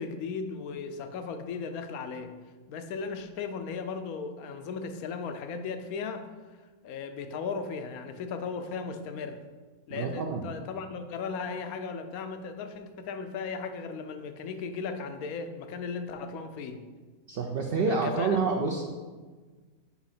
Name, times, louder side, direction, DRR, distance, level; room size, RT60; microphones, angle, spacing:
voice 1, 0.0-2.4 2.7-6.3 6.8-9.4 9.9-16.8 17.9-18.4, left 5 dB, 80° left, 8 dB, 1.1 m, -36 dB
voice 2, 9.9-10.5 17.3-18.8, right 4 dB, 65° right, 2 dB, 0.5 m, -28 dB
5.8 x 4.7 x 4.2 m, 1.4 s
omnidirectional pair, 1.5 m